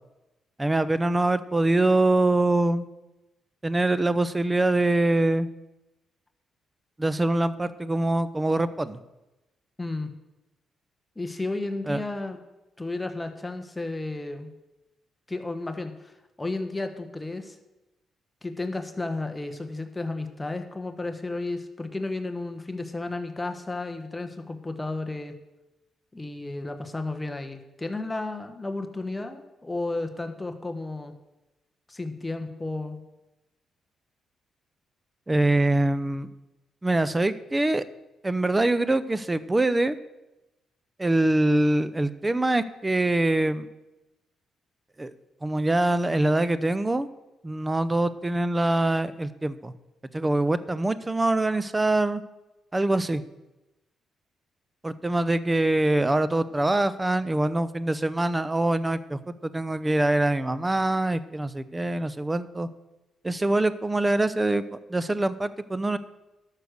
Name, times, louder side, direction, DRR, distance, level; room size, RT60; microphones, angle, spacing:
voice 1, 0.6-2.9 3.6-5.5 7.0-9.0 11.9-12.0 35.3-36.3 36.8-37.8 38.2-40.0 41.0-43.7 45.0-45.1 45.4-47.1 47.4-49.7 50.1-52.2 52.7-53.2 54.8-62.7 63.2-64.6 64.9-66.0, right 2 dB, 15° right, 14 dB, 0.7 m, -24 dB
voice 2, 9.8-10.1 11.1-12.4 12.8-14.5 15.3-16.1 16.4-17.6 18.4-25.3 26.1-31.1 31.9-33.0, left 2 dB, 15° left, 7 dB, 1.2 m, -33 dB
12.5 x 6.5 x 6.5 m, 1.0 s
cardioid pair, 80°, 0 cm